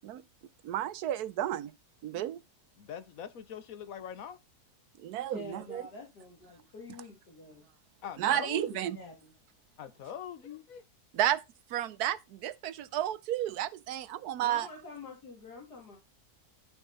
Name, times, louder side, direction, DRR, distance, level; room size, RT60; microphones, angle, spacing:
voice 1, 0.6-1.7 2.0-2.4 5.0-5.8 8.2-9.0 11.1-11.4 11.7-14.7, right 12 dB, 75° right, 1.2 m, -32 dB
voice 2, 2.8-4.4 8.0-8.7 9.8-10.9, left 9 dB, 65° left, 1.3 m, -43 dB
voice 3, 5.3-7.7 8.4-9.3 14.4-16.0, left 2 dB, 90° left, 3.0 m, -47 dB
11.5 x 6.5 x 4.0 m
omnidirectional pair, 1.7 m